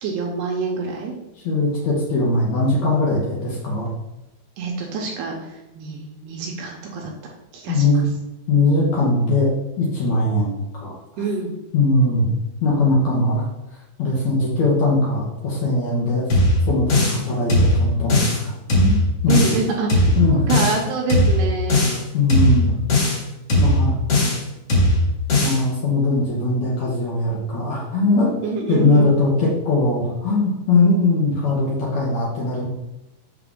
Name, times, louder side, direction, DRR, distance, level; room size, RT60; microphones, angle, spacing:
voice 1, 0.0-1.1 4.6-7.1 7.5-7.9 11.2-11.5 19.3-21.8 28.4-29.1, right 4 dB, 75° right, 0 dB, 2.7 m, -26 dB
voice 2, 1.4-3.9 7.7-8.0 8.5-9.5 9.8-11.0 11.7-12.3 12.6-13.5 14.0-16.2 16.7-19.3 20.1-20.4 22.1-22.7 23.6-24.0 25.4-28.3 28.7-32.7, left 2 dB, 90° left, -5 dB, 1.5 m, -20 dB
sound 1, 16.3-17.2 17.5-18.4 18.7-19.6 19.9-20.8 21.1-22.0 22.3-23.2 23.5-24.4 24.7-25.6, left 1 dB, 40° left, 2.4 m, -18 dB
6.8 x 6.1 x 3.7 m, 0.95 s
omnidirectional pair, 5.3 m